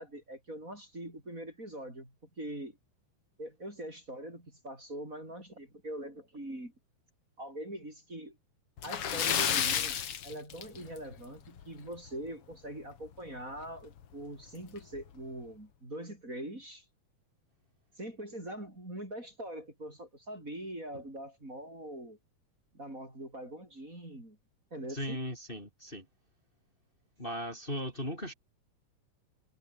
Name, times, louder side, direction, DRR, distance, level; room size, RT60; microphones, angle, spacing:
voice 1, 0.0-2.8 3.4-6.7 7.4-8.4 8.8-10.0 10.2-16.8 18.0-22.2 22.7-24.4 24.7-25.2, right 1 dB, 25° right, 7.8 m, -43 dB
Splash splatter, 8.8-11.1 11.5-11.6 12.1-12.2 13.6-13.7 14.0-14.1 14.8-15.0, left 9 dB, 50° left, 2.3 m, -31 dB
voice 2, 24.9-26.1 27.2-28.3, equal, 15° left, 6.8 m, -37 dB
omnidirectional pair, 3.7 m